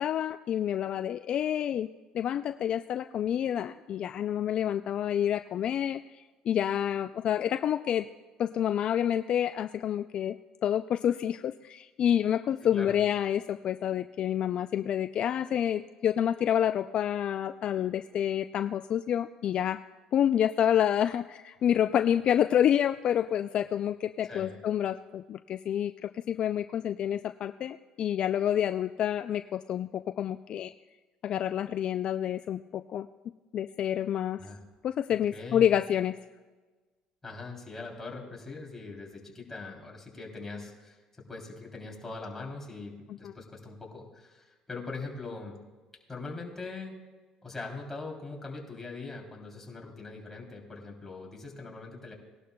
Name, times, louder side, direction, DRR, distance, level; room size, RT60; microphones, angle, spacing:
voice 1, 0.0-1.9 2.1-8.1 8.4-10.4 10.6-19.8 20.1-30.7 31.2-33.1 33.5-34.4 34.8-36.1, left 10 dB, 50° left, 10 dB, 0.3 m, -28 dB
voice 2, 24.2-24.6 34.4-34.6 35.1-35.8 37.2-45.6 46.1-46.9 47.4-52.1, left 3 dB, 15° left, -1 dB, 3.2 m, -42 dB
19.0 x 11.5 x 2.3 m, 1.3 s
supercardioid pair, 90°, 2 cm